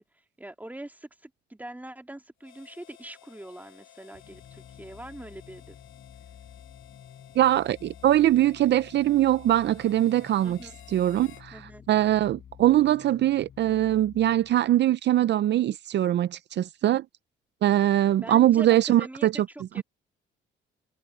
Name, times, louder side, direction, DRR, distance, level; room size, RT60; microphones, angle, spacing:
voice 1, 0.0-5.8 10.4-10.7 11.5-11.8 18.2-19.8, right 1 dB, 10° right, 2.9 m, -43 dB
Harmonica, 2.4-11.5, left 12 dB, 75° left, 2.8 m, -54 dB
sound 1, 4.1-14.9, left 8 dB, 60° left, 5.7 m, -50 dB
voice 2, 7.4-10.6 10.9-11.6 11.9-17.0 17.6-19.3 19.8-19.9, right 13 dB, 60° right, 0.5 m, -22 dB
cardioid pair, 90°, 20 cm